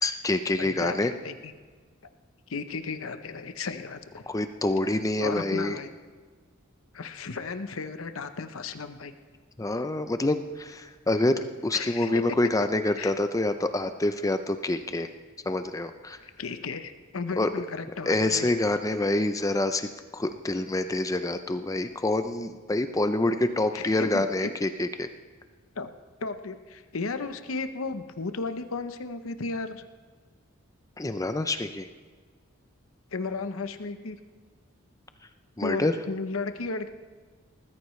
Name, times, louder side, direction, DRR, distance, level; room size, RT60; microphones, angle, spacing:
voice 1, 0.0-1.1 4.3-5.8 9.6-15.1 15.5-16.2 17.4-17.5 18.1-25.1 31.0-31.9 35.6-35.9, left 2 dB, 15° left, 9 dB, 0.5 m, -27 dB
voice 2, 0.6-1.5 2.5-4.2 5.2-5.9 6.9-9.1 11.7-12.1 13.0-13.1 16.2-18.5 23.7-24.5 25.8-25.9 26.2-29.8 33.1-34.2 35.6-36.9, left 4 dB, 80° left, 9 dB, 0.8 m, -34 dB
20.0 x 14.0 x 3.2 m, 1.5 s
head